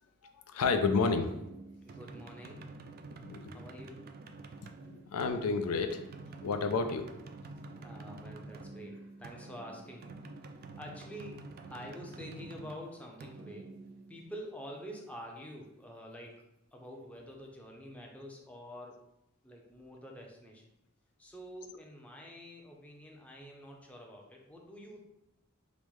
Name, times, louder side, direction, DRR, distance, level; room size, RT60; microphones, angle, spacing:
voice 1, 0.5-1.3 3.1-3.6 4.9-6.0 6.4-7.1, left 4 dB, 75° left, 7 dB, 0.4 m, -30 dB
sound 1, 1.0-14.6, right 3 dB, 45° right, 0.3 m, -48 dB
voice 2, 1.8-2.7 3.5-4.1 7.6-10.1 10.4-13.8 14.1-16.3 16.7-19.0 19.4-20.6 21.2-25.0, equal, 5° left, -1 dB, 0.6 m, -47 dB
5.2 x 2.1 x 3.1 m, 0.86 s
head